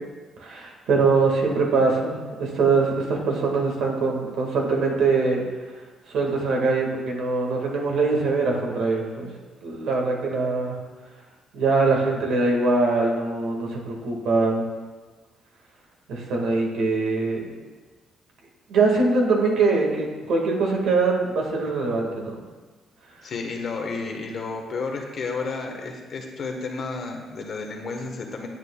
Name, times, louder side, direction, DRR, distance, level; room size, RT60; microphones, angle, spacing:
voice 1, 0.4-5.4 6.1-9.3 9.6-10.8 11.5-14.7 16.1-17.6 18.7-22.4, right 3 dB, 80° right, 0 dB, 1.7 m, -23 dB
voice 2, 23.2-28.5, left 4 dB, 55° left, 3 dB, 1.2 m, -31 dB
9.0 x 8.0 x 2.3 m, 1.3 s
cardioid pair, 90°, 0 cm